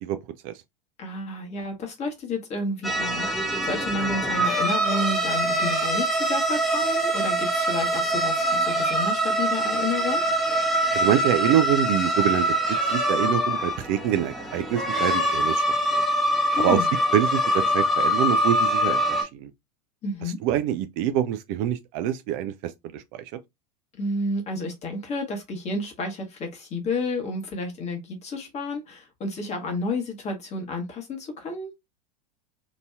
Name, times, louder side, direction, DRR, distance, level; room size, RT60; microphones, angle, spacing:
voice 1, 1.0-10.2 16.5-16.9 20.0-20.4 23.9-31.7, left 2 dB, 30° left, 1.1 m, -31 dB
sound 1, 2.8-19.2, right 1 dB, ahead, 0.9 m, -24 dB
voice 2, 10.9-12.5 12.9-15.6 15.9-16.0 16.6-16.8 17.1-19.5 20.4-23.2, right 11 dB, 45° right, 0.4 m, -25 dB
2.9 x 2.6 x 2.3 m
figure-of-eight pair, 85°, 21 cm